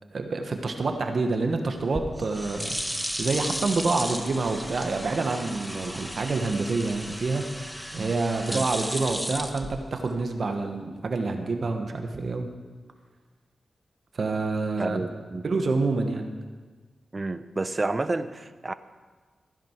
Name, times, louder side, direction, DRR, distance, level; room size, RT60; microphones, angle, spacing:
voice 1, 0.1-2.8 3.2-7.4 7.9-12.5 14.1-15.0 15.4-16.2, right 3 dB, 60° right, 5 dB, 1.4 m, -27 dB
sound 1, 1.8-10.2, equal, ahead, 1.2 m, -34 dB
voice 2, 14.8-15.4 17.1-18.7, right 3 dB, 35° right, 13 dB, 0.7 m, -30 dB
15.5 x 10.5 x 4.7 m, 1.4 s
cardioid pair, 60°, 0 cm